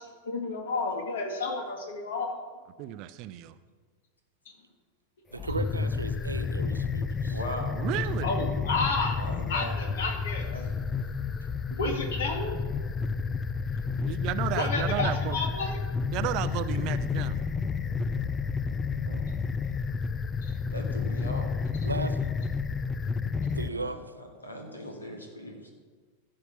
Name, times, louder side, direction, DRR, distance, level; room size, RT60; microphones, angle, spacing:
voice 1, 0.0-2.4 8.2-9.2 9.5-10.5 11.7-12.6 14.6-15.8 20.4-20.5, left 3 dB, 60° left, 4 dB, 1.9 m, -31 dB
voice 2, 2.8-3.6 7.7-8.4 14.0-15.4 16.1-17.4, right 13 dB, 40° right, 13 dB, 0.5 m, -33 dB
sound 1, 5.3-23.7, left 5 dB, 20° left, 0.5 m, -30 dB
voice 3, 5.3-7.4 21.8-22.2 23.4-24.0, right 2 dB, 80° right, 11 dB, 0.6 m, -35 dB
voice 4, 7.2-7.8 9.1-9.7 10.4-10.7 19.0-19.3 20.7-21.5 23.5-23.9 24.4-25.7, equal, 80° left, 2 dB, 2.1 m, -39 dB
14.0 x 5.5 x 6.9 m, 1.5 s
figure-of-eight pair, 90°, 0 cm